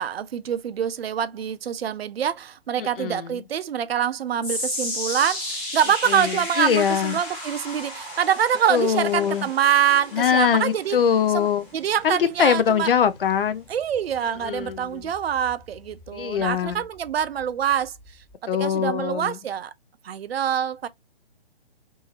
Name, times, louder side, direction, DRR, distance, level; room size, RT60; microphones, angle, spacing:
voice 1, 0.0-11.0 11.3-12.9 13.7-17.9 18.4-19.7 20.0-20.9, right 9 dB, 70° right, 0.5 m, -25 dB
voice 2, 2.8-3.4 6.1-7.2 8.7-9.5 10.1-11.7 12.0-13.7 14.4-15.0 16.1-16.8 18.5-19.4, left 8 dB, 60° left, 0.5 m, -23 dB
sound 1, 4.4-16.7 17.1-17.4 18.1-18.2, left 1 dB, 20° left, 1.5 m, -35 dB
2.9 x 2.7 x 2.4 m
hypercardioid pair, 145°, 32 cm